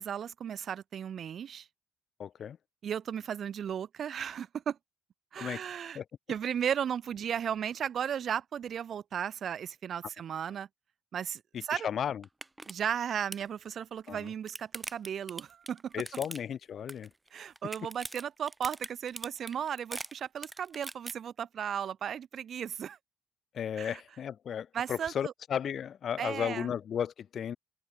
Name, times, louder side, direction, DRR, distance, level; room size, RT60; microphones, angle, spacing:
voice 1, 0.0-1.7 2.8-4.8 5.3-6.0 6.3-10.7 11.1-11.9 12.7-15.9 17.3-23.0 23.8-24.0 24.7-25.3 26.2-26.7, right 8 dB, 60° right, 0.5 m, -35 dB
voice 2, 2.2-2.6 5.4-5.6 5.9-6.0 11.7-12.2 14.1-14.3 15.9-17.1 23.5-27.6, left 8 dB, 60° left, 1.4 m, -34 dB
sound 1, 11.8-11.9 12.2-12.7 13.0-13.5 14.1-16.6 16.9-17.3 17.6-21.1, right 2 dB, 15° right, 1.6 m, -42 dB
open air
supercardioid pair, 60°, 0 cm